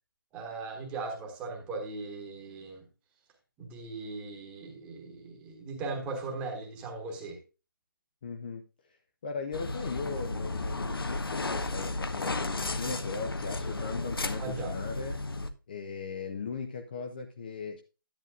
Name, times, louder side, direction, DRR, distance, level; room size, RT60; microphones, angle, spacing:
voice 1, 0.3-2.8 3.6-7.4 14.4-14.7, right 3 dB, 10° right, 2 dB, 1.3 m, -38 dB
voice 2, 8.2-9.0 9.2-15.2 15.7-17.8, left 5 dB, 25° left, 5 dB, 0.5 m, -38 dB
sound 1, 9.5-15.5, left 2 dB, 85° left, 1.0 m, -34 dB
10.0 x 9.2 x 2.4 m, 0.31 s
figure-of-eight pair, 165°, 12 cm